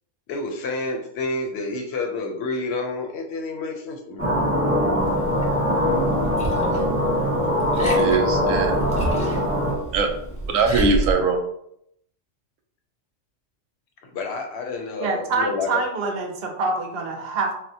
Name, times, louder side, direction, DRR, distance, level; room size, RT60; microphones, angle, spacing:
voice 1, 0.3-4.3 14.0-15.8, left 3 dB, 65° left, 4 dB, 0.8 m, -29 dB
sound 1, 4.2-9.7, equal, 10° right, 0.9 m, -22 dB
Liquid, 5.0-11.1, right 1 dB, 10° left, 0.4 m, -31 dB
voice 2, 7.7-8.8 9.9-10.1 10.5-11.4, right 4 dB, 90° right, 4 dB, 1.0 m, -21 dB
voice 3, 15.0-17.6, right 3 dB, 60° right, 2 dB, 0.7 m, -25 dB
4.2 x 2.1 x 2.7 m, 0.74 s
omnidirectional pair, 1.4 m